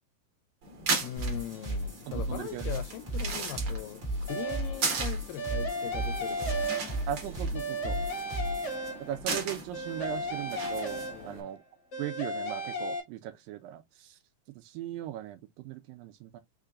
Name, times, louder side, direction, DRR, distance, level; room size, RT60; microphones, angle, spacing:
sound 1, 0.6-11.4, right 4 dB, 50° right, 1.9 m, -38 dB
voice 1, 1.0-6.9 11.1-11.5, left 12 dB, 80° left, 2.2 m, -41 dB
sound 2, 1.2-8.7, right 1 dB, 25° right, 1.8 m, -35 dB
voice 2, 2.1-2.7 7.1-8.0 9.0-11.6 12.0-14.2 14.6-16.4, right 12 dB, 80° right, 2.2 m, -38 dB
sound 3, 4.3-4.8 5.4-7.2 7.5-9.3 9.7-11.5 11.9-13.0, right 1 dB, 55° left, 1.1 m, -35 dB
5.7 x 3.4 x 2.5 m
omnidirectional pair, 4.2 m